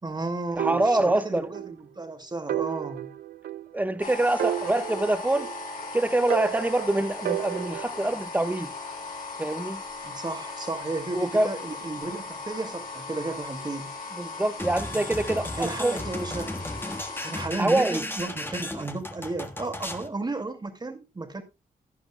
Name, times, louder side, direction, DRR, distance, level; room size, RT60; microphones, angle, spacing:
voice 1, 0.0-3.1 10.0-13.9 15.6-16.8 17.2-21.4, right 3 dB, 30° right, 2.2 m, -33 dB
voice 2, 0.5-1.5 3.7-5.5 5.9-8.7 9.4-9.8 11.1-11.5 14.1-16.0 17.6-18.0, right 1 dB, 10° right, 1.0 m, -25 dB
sound 1, 0.6-1.8 2.0-2.1 2.5-4.0 4.4-5.8 6.3-8.1, right 12 dB, 85° right, 0.6 m, -32 dB
sound 2, 4.0-17.5, left 3 dB, 65° left, 4.1 m, -38 dB
sound 3, 14.6-20.1, left 1 dB, 15° left, 1.4 m, -35 dB
16.5 x 10.0 x 2.2 m
cardioid pair, 85°, 15 cm